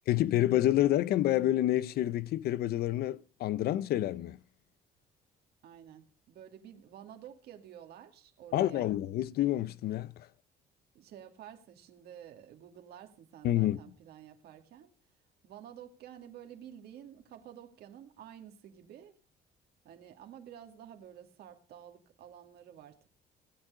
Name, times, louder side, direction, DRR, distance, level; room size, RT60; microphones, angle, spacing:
voice 1, 0.1-4.4 8.5-10.1 13.4-13.8, left 13 dB, 70° left, 0.6 m, -28 dB
voice 2, 5.6-9.0 10.9-14.9 15.4-19.2 19.8-23.1, right 10 dB, 75° right, 2.3 m, -51 dB
17.5 x 9.1 x 4.9 m
cardioid pair, 130°, 17 cm